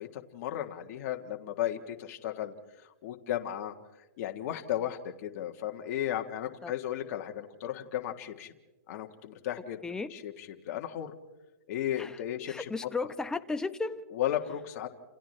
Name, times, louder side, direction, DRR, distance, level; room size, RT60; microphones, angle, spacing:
voice 1, 0.0-3.7 4.2-8.5 8.9-11.1 11.7-12.7 14.1-14.9, left 11 dB, 50° left, 4 dB, 1.6 m, -35 dB
voice 2, 12.5-14.1, left 3 dB, 5° left, 9 dB, 0.9 m, -34 dB
29.5 x 28.5 x 3.3 m, 1.1 s
hypercardioid pair, 145°, 10 cm